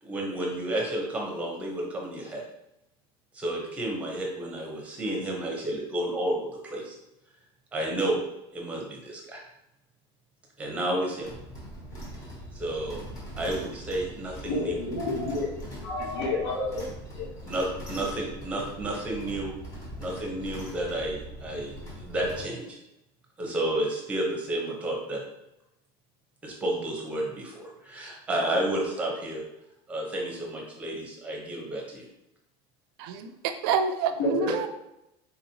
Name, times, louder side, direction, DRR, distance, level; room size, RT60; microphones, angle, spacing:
voice 1, 0.0-2.4 3.3-6.4 6.6-6.9 7.7-8.2 8.5-9.4 10.6-11.3 12.5-13.0 13.4-14.7 17.5-19.5 20.0-22.8 23.4-25.2 26.4-29.4 29.9-32.1, right 1 dB, 10° right, -1 dB, 0.7 m, -31 dB
sound 1, 11.2-22.4, equal, 25° left, 0.9 m, -41 dB
voice 2, 14.4-15.5 15.8-16.8 17.1-17.3 34.2-34.7, left 2 dB, 85° left, -3 dB, 1.0 m, -29 dB
voice 3, 33.0-34.7, right 6 dB, 60° right, 8 dB, 0.4 m, -28 dB
4.1 x 2.9 x 2.7 m, 0.87 s
cardioid pair, 180°, 14 cm